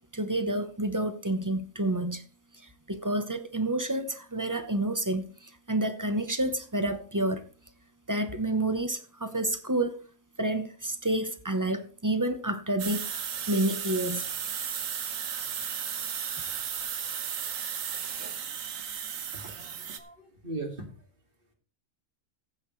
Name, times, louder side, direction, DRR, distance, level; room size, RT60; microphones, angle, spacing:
voice 1, 0.1-2.2 2.9-7.4 8.1-10.0 10.4-14.2, right 1 dB, 15° right, 0.8 m, -29 dB
sound 1, 12.8-20.0, right 7 dB, 70° right, 1.4 m, -34 dB
voice 2, 19.3-21.1, right 2 dB, 40° right, 2.6 m, -40 dB
15.0 x 8.9 x 3.2 m
omnidirectional pair, 1.5 m